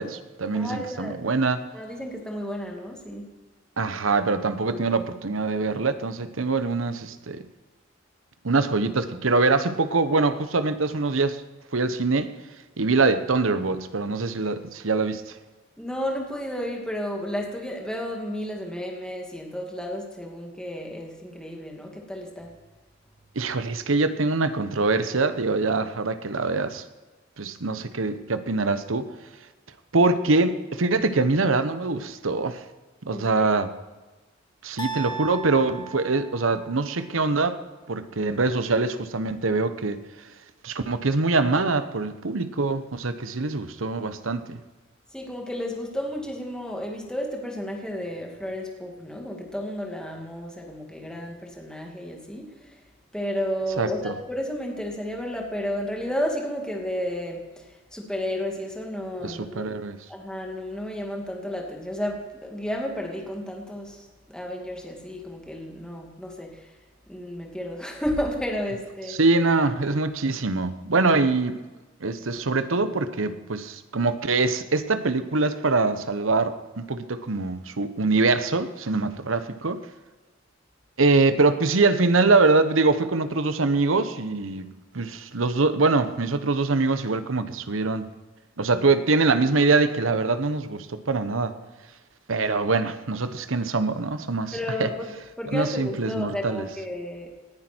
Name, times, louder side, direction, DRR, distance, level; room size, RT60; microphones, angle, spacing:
voice 1, 0.0-1.6 3.8-7.4 8.4-11.4 11.7-12.3 12.8-15.3 23.3-26.8 27.4-29.1 29.9-32.6 33.1-33.7 34.6-37.6 37.9-40.0 40.6-44.6 53.8-54.1 59.2-60.0 69.1-71.6 72.0-79.8 81.0-84.7 84.9-88.1 88.6-91.5 92.3-94.9 95.5-96.6, right 3 dB, 85° right, 11 dB, 1.0 m, -24 dB
voice 2, 0.5-1.2 1.7-3.2 15.8-22.5 33.1-33.6 45.1-52.8 53.1-59.7 60.1-66.8 67.1-69.2 94.5-97.3, equal, 5° left, 0 dB, 2.4 m, -32 dB
sound 1, 34.8-36.9, right 4 dB, 20° left, 1.8 m, -36 dB
18.5 x 10.5 x 4.5 m, 1.2 s
head